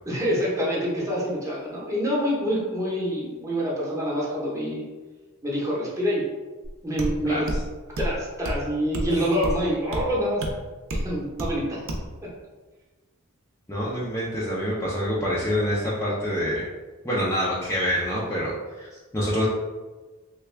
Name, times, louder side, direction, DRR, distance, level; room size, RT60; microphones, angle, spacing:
voice 1, 0.1-4.8 5.4-6.2 6.8-7.5 8.0-10.4 10.9-11.8, equal, 15° right, -6 dB, 0.8 m, -26 dB
sound 1, 6.6-6.7 7.0-7.1 7.5-7.6 8.0-8.2 8.4-8.6 8.9-9.1 9.4-9.6 9.9-10.0 10.4-10.5 10.9-11.1 11.4-11.5 11.9-12.1, right 1 dB, 60° right, 0.6 m, -28 dB
voice 2, 13.7-16.7 17.0-19.4, equal, 15° left, -7 dB, 0.4 m, -26 dB
3.4 x 2.3 x 3.3 m, 1.3 s
head